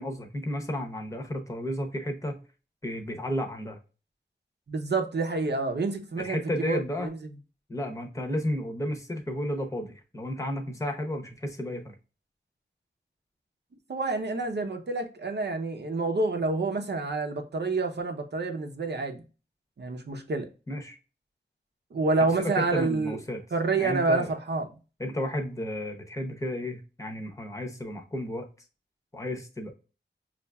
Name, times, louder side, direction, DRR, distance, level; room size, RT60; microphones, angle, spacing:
voice 1, 0.0-2.4 2.8-3.8 6.2-7.1 7.7-12.0 20.7-21.0 22.2-23.4 23.8-24.3 25.0-28.5 29.1-29.7, left 1 dB, 15° left, 0.8 m, -32 dB
voice 2, 4.7-7.1 13.9-19.2 19.8-20.5 21.9-23.2 23.5-24.7, right 3 dB, 65° right, 0.7 m, -28 dB
5.5 x 2.5 x 2.2 m
wide cardioid pair, 65°, 19 cm